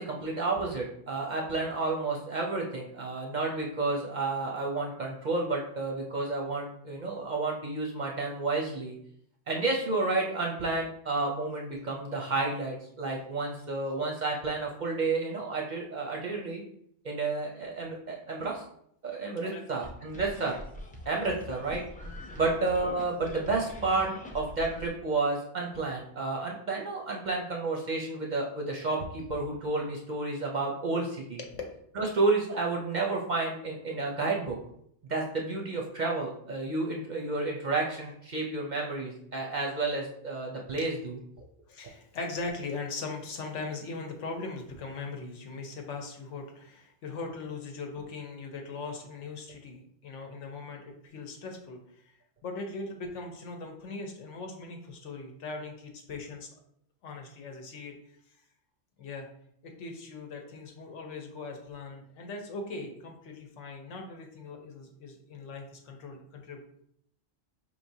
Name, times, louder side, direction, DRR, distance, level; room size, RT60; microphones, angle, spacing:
voice 1, 0.0-8.9 9.5-16.6 17.0-18.6 19.0-20.6 21.1-21.8 22.4-31.4 32.0-34.6 35.1-41.2, right 3 dB, 50° right, -1 dB, 0.6 m, -31 dB
sound 1, 19.8-24.9, left 1 dB, 15° left, 0.3 m, -43 dB
voice 2, 41.7-52.1 52.4-56.5 57.0-58.2 59.0-59.3 59.6-66.6, left 3 dB, 80° left, 3 dB, 1.1 m, -40 dB
5.1 x 3.2 x 2.7 m, 0.70 s
omnidirectional pair, 1.2 m